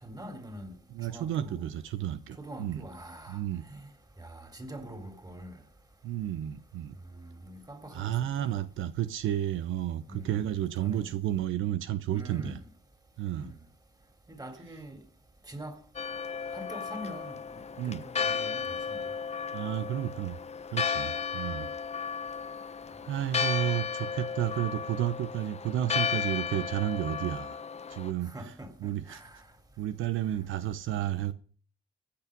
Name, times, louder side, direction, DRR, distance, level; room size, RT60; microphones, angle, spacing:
voice 1, 0.0-0.8 1.0-1.6 2.4-3.4 3.7-3.8 4.2-5.6 7.2-8.1 10.1-11.1 12.1-12.7 13.3-13.6 14.3-15.0 15.5-15.8 16.5-19.0 28.2-29.4, right 1 dB, 20° right, 3.8 m, -44 dB
voice 2, 0.9-2.8 3.3-3.7 6.0-6.9 7.9-12.6 13.2-13.6 17.8-18.1 19.5-20.4 20.7-21.7 23.0-27.6 27.9-28.5 28.8-29.4 29.8-31.3, right 12 dB, 80° right, 0.9 m, -32 dB
Church bell, 16.0-28.1, left 6 dB, 35° left, 0.8 m, -34 dB
15.5 x 8.7 x 5.3 m
cardioid pair, 90°, 20 cm